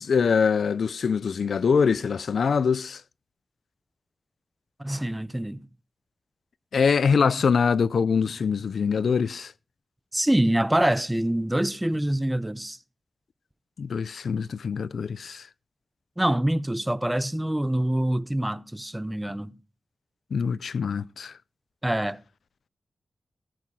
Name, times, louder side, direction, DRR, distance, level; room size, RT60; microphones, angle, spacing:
voice 1, 0.0-3.0 6.7-9.5 13.8-15.5 20.3-21.3, left 6 dB, 85° left, 0.5 m, -24 dB
voice 2, 4.8-5.7 7.1-7.3 8.2-8.3 10.1-12.8 16.2-19.5 21.8-22.2, right 1 dB, 10° right, 0.7 m, -25 dB
18.5 x 7.8 x 4.8 m
wide cardioid pair, 85°, 0 cm